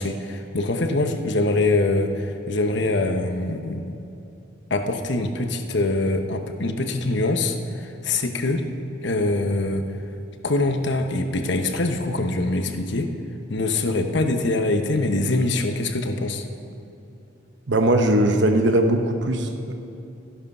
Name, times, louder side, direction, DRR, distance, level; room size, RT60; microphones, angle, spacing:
voice 1, 0.0-4.0 4.7-8.7 9.0-9.8 10.4-13.1 13.5-16.5, left 2 dB, 60° left, 6 dB, 1.0 m, -24 dB
voice 2, 17.7-19.7, right 1 dB, 60° right, 5 dB, 1.0 m, -20 dB
14.0 x 11.5 x 5.5 m, 2.8 s
head